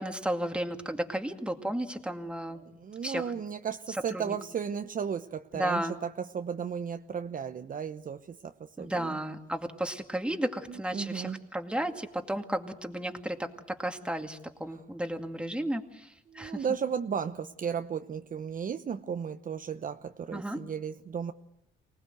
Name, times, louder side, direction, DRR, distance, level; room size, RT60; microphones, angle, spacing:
voice 1, 0.0-2.6 3.0-3.3 4.1-4.4 5.5-6.0 8.8-16.6 20.3-20.6, right 1 dB, 5° right, 5 dB, 2.3 m, -33 dB
voice 2, 2.8-9.2 10.7-11.4 16.3-21.3, right 7 dB, 45° right, 8 dB, 0.9 m, -35 dB
25.0 x 19.0 x 8.0 m, 0.82 s
cardioid pair, 90°, 20 cm